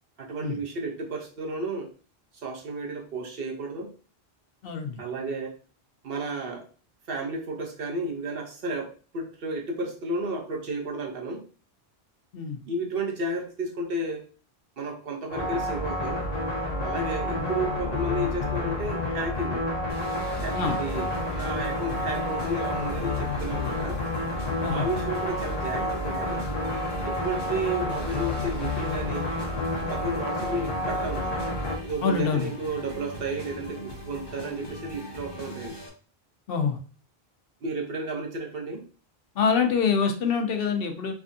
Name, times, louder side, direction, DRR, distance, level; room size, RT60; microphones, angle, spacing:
voice 1, 0.2-1.9 2.4-3.9 5.0-5.5 6.0-6.7 7.1-11.4 12.6-14.2 14.8-16.3 16.8-19.6 20.4-21.1 21.3-24.0 24.7-26.4 27.0-29.3 29.9-31.4 31.8-35.8 37.6-38.8, right 2 dB, 65° right, 1 dB, 1.0 m, -32 dB
voice 2, 4.6-5.0 12.3-12.6 20.5-20.8 24.6-24.9 32.0-32.5 36.5-36.8 39.4-41.1, left 6 dB, 65° left, 5 dB, 0.8 m, -25 dB
sound 1, 15.3-31.8, left 1 dB, 40° left, 1.0 m, -30 dB
sound 2, 19.9-35.9, left 1 dB, 25° left, 1.2 m, -40 dB
3.4 x 3.3 x 2.6 m, 0.38 s
omnidirectional pair, 1.1 m